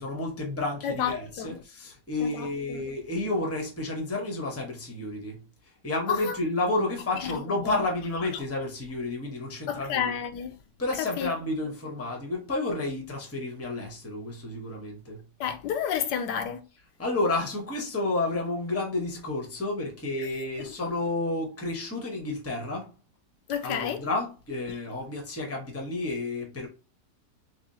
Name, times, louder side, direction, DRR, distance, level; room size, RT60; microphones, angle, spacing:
voice 1, 0.0-5.4 5.8-10.1 10.8-15.2 17.0-22.9 23.6-26.7, left 2 dB, 10° left, 0.7 m, -31 dB
voice 2, 0.8-1.6 2.2-2.9 6.1-6.4 7.2-7.8 8.3-8.4 9.7-10.5 11.0-11.3 15.4-16.7 20.2-20.3 23.5-24.0, left 8 dB, 85° left, 1.2 m, -31 dB
3.6 x 3.2 x 2.7 m
omnidirectional pair, 1.8 m